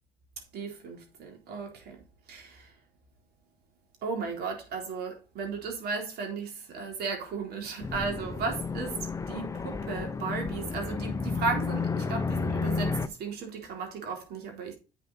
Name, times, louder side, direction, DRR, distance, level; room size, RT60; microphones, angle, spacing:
voice 1, 0.5-2.0 2.3-2.7 4.0-14.7, right 4 dB, 70° right, 3.7 m, -35 dB
sound 1, 7.8-13.1, left 4 dB, 20° left, 0.7 m, -32 dB
8.2 x 6.9 x 4.1 m
cardioid pair, 110°, 17 cm